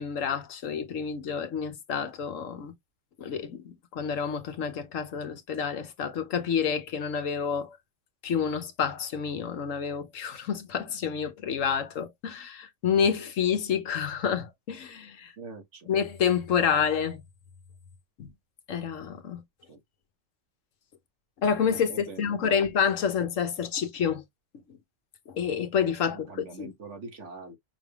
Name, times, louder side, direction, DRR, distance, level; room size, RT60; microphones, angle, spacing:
voice 1, 0.0-2.7 3.2-7.8 8.2-15.3 15.9-17.2 18.2-18.3 18.7-19.4 21.4-24.2 25.3-26.7, left 7 dB, 90° left, 1.4 m, -28 dB
voice 2, 15.4-15.9 19.7-19.8 21.9-22.7 26.1-27.6, right 4 dB, 70° right, 1.6 m, -44 dB
5.9 x 3.3 x 2.4 m
omnidirectional pair, 1.3 m